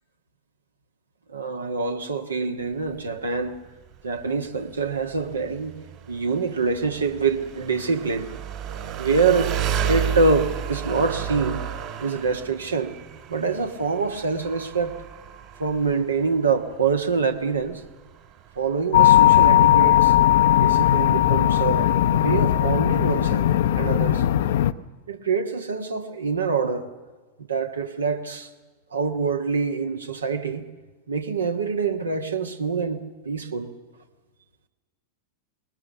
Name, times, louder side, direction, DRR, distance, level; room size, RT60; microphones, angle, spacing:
voice 1, 1.3-3.6 4.0-5.7 6.1-8.3 9.0-9.5 9.9-11.6 12.0-12.9 13.3-15.0 15.6-17.8 18.5-20.1 20.6-23.5 23.7-24.2 25.1-26.9 27.5-28.5 28.9-30.6 31.1-33.7, right 4 dB, 75° right, 1.5 m, -25 dB
Engine, 2.6-22.2, right 8 dB, 40° right, 3.0 m, -33 dB
sound 1, 18.9-24.7, left 12 dB, 55° left, 0.6 m, -18 dB
21.0 x 20.5 x 6.7 m
figure-of-eight pair, 90°, 0 cm